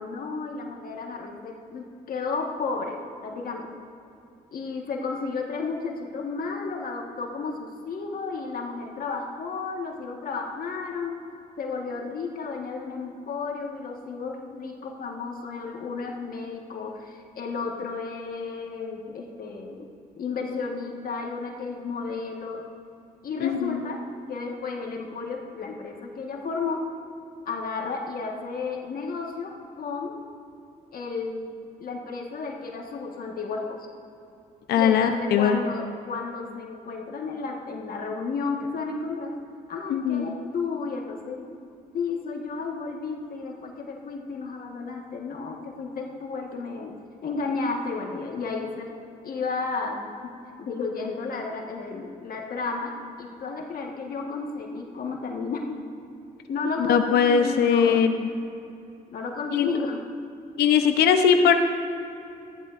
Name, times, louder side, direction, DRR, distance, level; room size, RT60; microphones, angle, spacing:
voice 1, 0.0-3.7 4.5-11.2 11.6-19.9 20.2-22.6 23.2-24.0 24.3-26.9 27.4-30.2 30.9-31.5 31.8-33.8 34.7-39.3 39.7-41.5 41.9-47.0 47.2-48.9 49.2-50.3 50.6-55.8 56.5-58.1 59.1-60.0, left 4 dB, 65° left, 0 dB, 1.5 m, -32 dB
voice 2, 23.4-23.8 34.7-35.6 39.9-40.3 56.9-58.3 59.5-59.7 60.6-61.5, left 7 dB, 85° left, 7 dB, 0.8 m, -20 dB
14.5 x 11.0 x 2.5 m, 2.6 s
cardioid pair, 70°, 16 cm